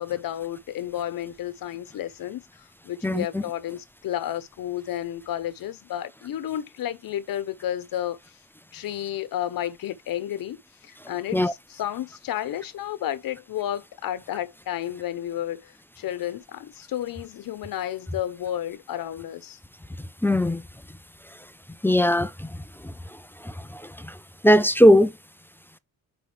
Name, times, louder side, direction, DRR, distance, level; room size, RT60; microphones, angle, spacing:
voice 1, 0.0-8.2 8.7-10.6 10.8-19.6, left 11 dB, 75° left, 1.0 m, -32 dB
voice 2, 20.2-20.6 21.8-22.5 23.4-23.5 24.4-25.1, equal, 5° left, 0.5 m, -18 dB
6.0 x 5.0 x 3.4 m
cardioid pair, 105°, 35 cm